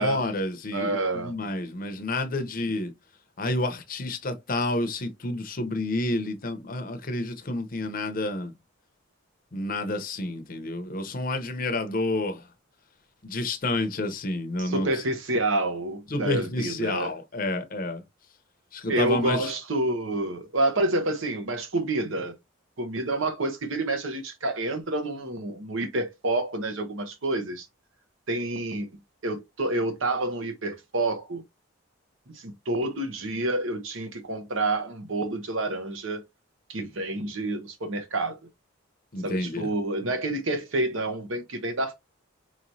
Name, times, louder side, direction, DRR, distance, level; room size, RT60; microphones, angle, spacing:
voice 1, 0.0-2.9 3.4-8.5 9.5-12.5 13.2-15.0 16.1-18.0 18.7-19.5 39.1-39.7, left 2 dB, 40° left, 0.7 m, -29 dB
voice 2, 0.7-1.3 14.6-17.1 18.9-22.3 22.8-27.7 28.3-28.9 29.2-31.4 32.3-36.2 36.7-38.4 39.2-41.9, right 2 dB, 65° right, 0.9 m, -28 dB
4.5 x 3.0 x 2.6 m
head